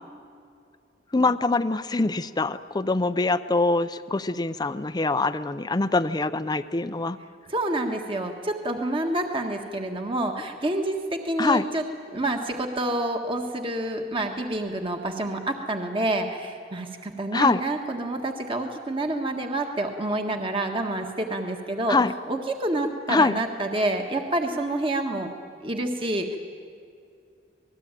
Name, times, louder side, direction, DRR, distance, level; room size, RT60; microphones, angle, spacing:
voice 1, 1.1-7.2 11.4-11.6 17.3-17.6 21.9-22.1 23.1-23.4, left 3 dB, 20° left, 11 dB, 0.5 m, -24 dB
voice 2, 7.5-11.8 12.1-22.0 22.3-25.3 25.6-26.4, right 1 dB, 30° right, 3 dB, 1.6 m, -28 dB
27.0 x 20.0 x 9.0 m, 2.5 s
head